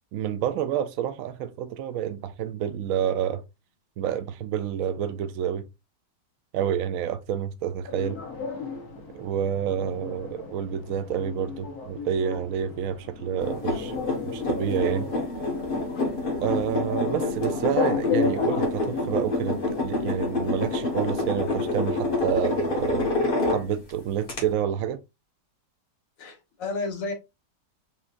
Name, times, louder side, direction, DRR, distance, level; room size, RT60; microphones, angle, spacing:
voice 1, 0.1-3.4 4.0-5.7 6.5-8.2 9.1-15.1 16.4-23.1 23.5-25.0, right 9 dB, 75° right, 0.7 m, -29 dB
sound 1, 7.9-21.6, left 5 dB, 60° left, 1.5 m, -34 dB
sound 2, 13.4-23.9 24.3-24.4, left 2 dB, 35° left, 1.3 m, -27 dB
voice 2, 26.2-27.1, left 3 dB, 85° left, 2.1 m, -31 dB
5.4 x 3.2 x 2.5 m
omnidirectional pair, 1.9 m